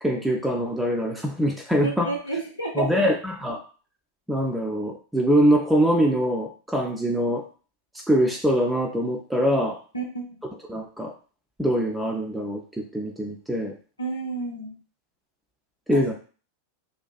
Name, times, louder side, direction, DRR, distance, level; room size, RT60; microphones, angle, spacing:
voice 1, 0.0-2.1 2.7-3.6 4.3-7.5 8.1-9.8 10.7-11.1 11.6-13.7 15.9-16.1, equal, 5° right, 0 dB, 0.3 m, -23 dB
voice 2, 1.8-3.1 9.9-10.3 14.0-14.7 15.9-16.0, right 3 dB, 85° left, -2 dB, 0.6 m, -30 dB
2.5 x 2.2 x 2.3 m, 0.37 s
figure-of-eight pair, 90°, 0 cm